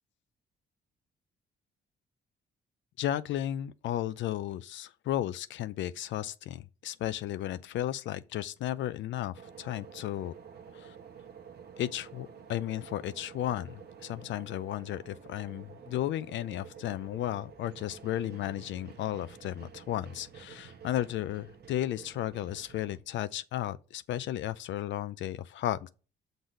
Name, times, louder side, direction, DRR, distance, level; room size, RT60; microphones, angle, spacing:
voice 1, 3.0-10.3 10.7-11.0 11.8-25.9, left 12 dB, 70° left, 0.4 m, -34 dB
sound 1, 9.3-23.0, right 7 dB, 55° right, 1.1 m, -50 dB
6.1 x 4.0 x 5.2 m
cardioid pair, 90°, 20 cm